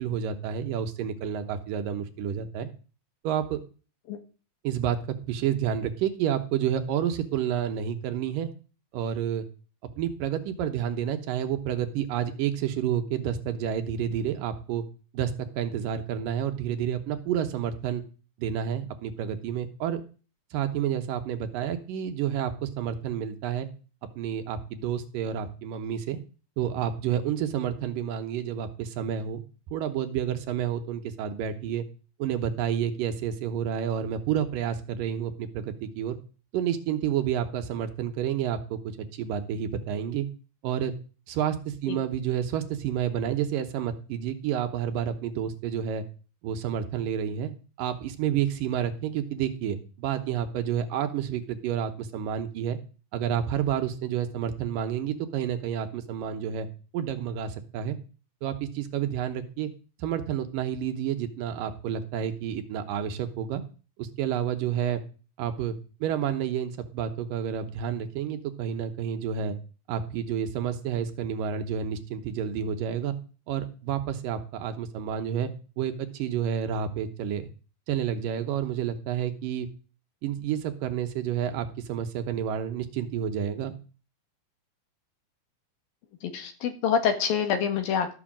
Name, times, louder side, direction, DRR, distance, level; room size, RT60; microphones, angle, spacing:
voice 1, 0.0-2.7 3.2-3.6 4.6-5.0 5.3-8.5 8.9-9.5 10.0-14.8 15.1-18.0 18.4-20.0 20.5-23.7 24.2-26.2 26.6-29.4 29.7-31.8 32.2-36.2 36.5-40.3 40.6-40.9 41.3-46.0 46.4-47.5 47.8-52.8 53.1-56.7 56.9-58.0 58.4-59.7 60.0-63.6 64.0-65.0 65.4-65.8 66.0-69.6 69.9-73.2 73.5-75.5 75.8-77.5 77.9-79.7 80.2-83.8, right 9 dB, 75° right, 8 dB, 2.6 m, -29 dB
voice 2, 86.2-88.1, left 7 dB, 75° left, 7 dB, 3.5 m, -26 dB
13.5 x 6.2 x 7.5 m, 0.36 s
omnidirectional pair, 4.2 m